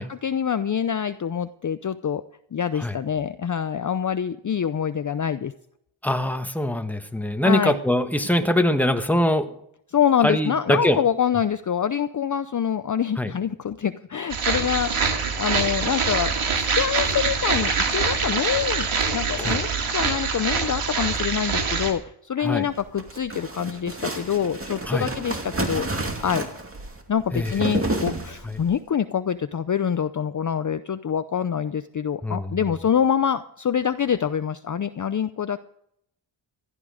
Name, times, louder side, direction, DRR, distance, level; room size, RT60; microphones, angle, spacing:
voice 1, 0.0-2.2 2.5-5.5 7.4-7.8 9.9-25.9 26.2-26.4 27.1-35.6, left 8 dB, 40° left, 12 dB, 0.6 m, -25 dB
voice 2, 6.0-9.5 10.2-11.0 13.2-13.3 19.4-19.6 22.4-22.7 24.9-25.1 27.3-27.5 28.4-28.6 32.2-32.6, left 1 dB, 5° left, 7 dB, 1.4 m, -23 dB
sound 1, 14.3-21.9, right 5 dB, 75° right, 2.5 m, -24 dB
sound 2, 22.7-28.7, right 2 dB, 25° right, 2.4 m, -30 dB
16.0 x 12.0 x 5.0 m, 0.73 s
cardioid pair, 70°, 50 cm